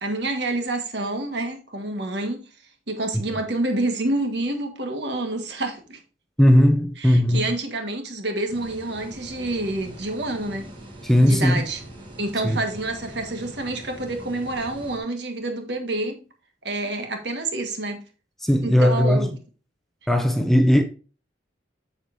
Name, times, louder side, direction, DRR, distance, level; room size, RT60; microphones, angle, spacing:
voice 1, 0.0-2.5 2.9-6.0 7.0-10.7 11.2-11.8 12.2-16.2 16.6-18.0 18.6-19.3, right 2 dB, 65° right, 1.6 m, -28 dB
voice 2, 6.4-7.5 11.0-11.6 12.4-12.6 18.4-19.3 20.1-20.8, equal, ahead, 0.6 m, -17 dB
sound 1, 8.5-15.0, right 1 dB, 25° right, 1.7 m, -42 dB
7.8 x 7.1 x 2.7 m
head